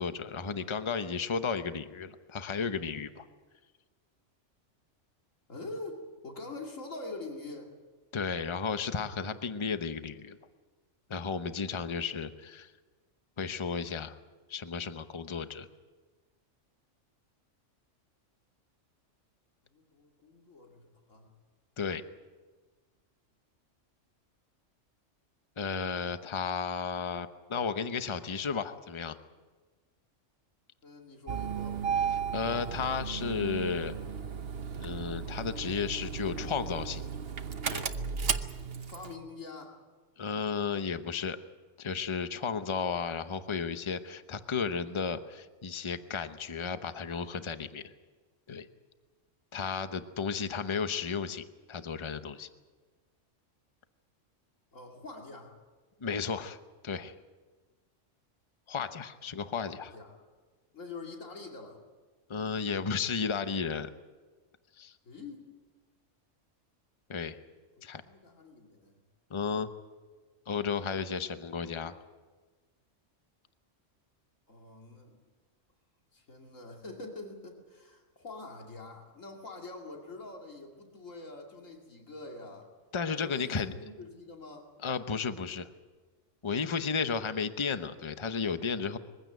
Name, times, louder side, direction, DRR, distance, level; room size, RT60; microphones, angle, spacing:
voice 1, 0.0-3.2 8.1-10.4 11.1-12.7 13.4-14.2 14.5-15.7 21.8-22.0 25.6-29.2 32.3-33.9 34.8-37.0 37.7-37.9 40.2-41.4 41.8-47.8 48.5-48.7 49.5-52.5 56.0-56.6 56.8-57.1 58.7-59.9 62.3-63.9 64.8-64.9 67.1-67.4 67.8-68.0 69.3-69.7 70.5-72.0 82.9-83.7 84.8-85.7 86.4-89.0, left 5 dB, 25° left, 10 dB, 0.8 m, -33 dB
voice 2, 5.5-7.7 19.7-21.3 30.8-31.8 38.9-39.8 54.7-55.5 59.6-60.2 60.7-61.8 65.0-65.4 67.8-69.0 74.5-75.2 76.1-82.7 83.2-84.7, left 2 dB, 85° left, 1 dB, 2.9 m, -45 dB
Engine starting, 31.3-39.1, right 6 dB, 55° right, 1.2 m, -35 dB
22.5 x 16.0 x 9.2 m, 1.4 s
omnidirectional pair, 1.3 m